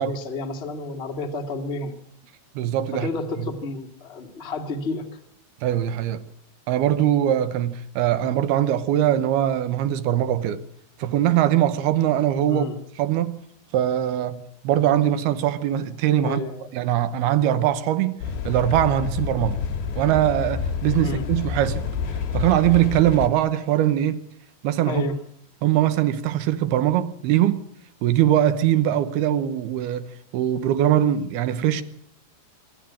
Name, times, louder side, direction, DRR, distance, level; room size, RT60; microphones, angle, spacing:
voice 1, 0.0-1.9 2.9-5.0 12.5-12.8 16.2-16.7 21.0-21.2 24.9-25.2, left 3 dB, 30° left, 1.1 m, -30 dB
voice 2, 2.6-3.1 5.6-6.2 6.7-10.6 11.0-12.6 13.0-13.4 13.7-16.4 16.7-18.2 18.4-19.6 20.0-21.8 22.3-24.2 24.6-25.0 25.6-27.6 28.0-30.1 30.3-31.8, right 12 dB, 75° right, 2.8 m, -21 dB
sound 1, 18.2-23.3, left 6 dB, 90° left, 4.1 m, -28 dB
25.5 x 12.0 x 8.7 m
omnidirectional pair, 5.0 m